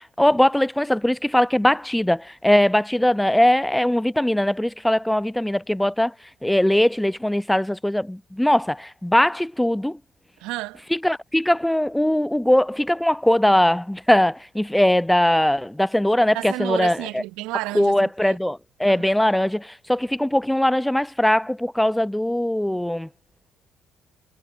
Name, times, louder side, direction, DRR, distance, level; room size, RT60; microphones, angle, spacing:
voice 1, 0.0-6.1 6.4-10.0 10.9-17.2 17.7-23.1, left 1 dB, 5° left, 0.6 m, -20 dB
voice 2, 10.4-10.8 16.3-18.5 18.9-19.0, right 20 dB, 70° right, 1.1 m, -31 dB
figure-of-eight pair, 45°, 0 cm